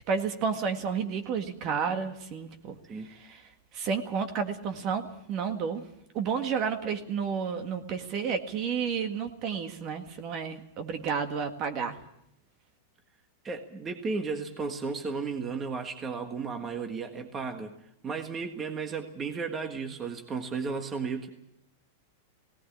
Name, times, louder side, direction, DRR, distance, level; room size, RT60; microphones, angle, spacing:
voice 1, 0.1-2.8 3.1-3.4 3.7-5.8 6.1-12.0, right 6 dB, 40° right, 7 dB, 1.8 m, -31 dB
voice 2, 13.4-17.7 18.0-21.3, right 4 dB, 20° right, 6 dB, 1.6 m, -34 dB
18.0 x 17.5 x 8.6 m, 0.77 s
supercardioid pair, 145°, 0 cm